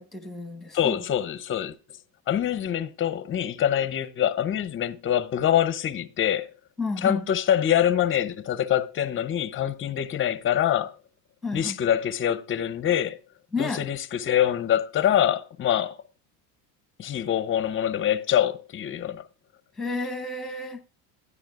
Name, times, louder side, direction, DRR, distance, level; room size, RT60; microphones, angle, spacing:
voice 1, 0.0-1.0 6.8-7.2 11.4-11.8 13.5-13.8 19.8-20.8, left 3 dB, ahead, 1.0 m, -31 dB
voice 2, 0.7-1.7 2.3-6.5 7.0-10.9 11.5-13.2 13.6-16.0 17.0-19.2, left 10 dB, 25° left, 0.6 m, -25 dB
13.0 x 9.6 x 2.4 m
supercardioid pair, 110°, 48 cm